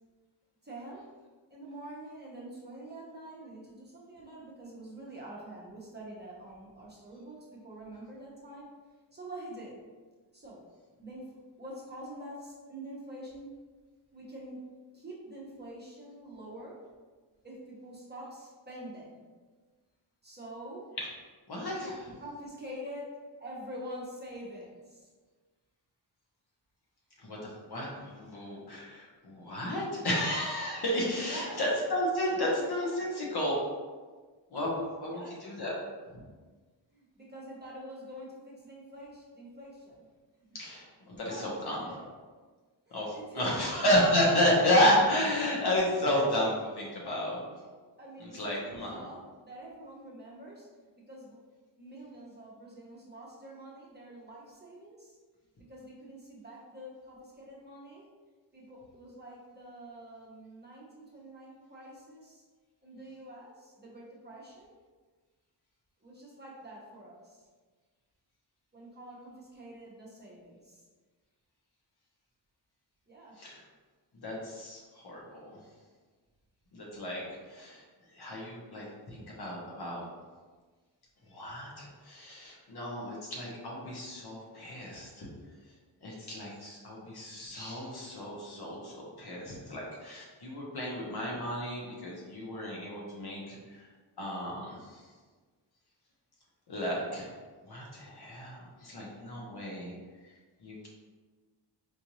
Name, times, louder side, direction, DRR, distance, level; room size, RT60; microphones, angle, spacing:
voice 1, 0.6-1.0 1.5-8.7 9.1-9.8 10.3-10.6 11.0-13.5 14.1-14.6 14.9-16.8 17.4-19.3 20.2-20.9 21.7-25.1 31.1-31.7 32.3-33.0 35.1-35.4 36.9-40.1 40.5-40.6 41.3-42.2 42.9-43.7 47.5-47.6 48.0-50.7 51.1-51.4 51.8-55.2 55.7-58.1 58.5-62.4 62.8-64.7 66.0-67.4 68.7-70.8 73.1-73.4, right 1 dB, 20° right, -5 dB, 0.8 m, -46 dB
voice 2, 21.5-21.9 27.2-33.5 34.5-35.7 40.5-41.9 42.9-47.4 48.2-49.0 73.4-73.6 74.2-75.6 76.7-77.8 78.1-80.0 81.3-85.3 86.0-93.9 94.2-95.0 96.7-97.3 97.6-99.9 100.6-100.9, left 1 dB, 55° left, -4 dB, 1.1 m, -32 dB
4.5 x 2.5 x 3.0 m, 1.4 s
wide cardioid pair, 110°, 45 cm